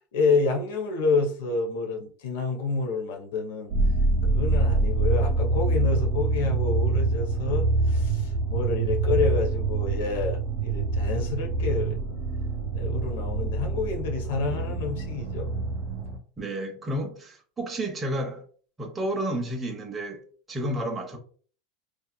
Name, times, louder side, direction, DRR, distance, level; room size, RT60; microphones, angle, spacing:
voice 1, 0.1-3.7 4.2-12.0 12.7-15.5, left 4 dB, 80° left, 0.6 m, -28 dB
sound 1, 3.7-16.2, right 3 dB, 55° right, 0.8 m, -25 dB
voice 2, 16.4-18.4 18.8-20.2 20.5-21.2, right 1 dB, 15° right, 0.6 m, -31 dB
2.8 x 2.3 x 2.2 m
supercardioid pair, 125°, 0 cm